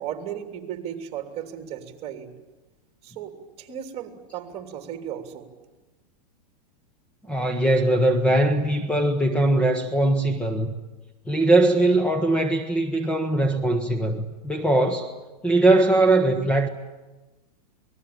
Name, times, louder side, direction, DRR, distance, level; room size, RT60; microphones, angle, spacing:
voice 1, 0.0-2.3 3.0-5.5, right 9 dB, 30° right, 3.2 m, -35 dB
voice 2, 7.3-10.7 11.3-15.1 15.4-16.7, right 2 dB, 5° left, 1.2 m, -21 dB
28.0 x 20.0 x 8.9 m
supercardioid pair, 150°, 21 cm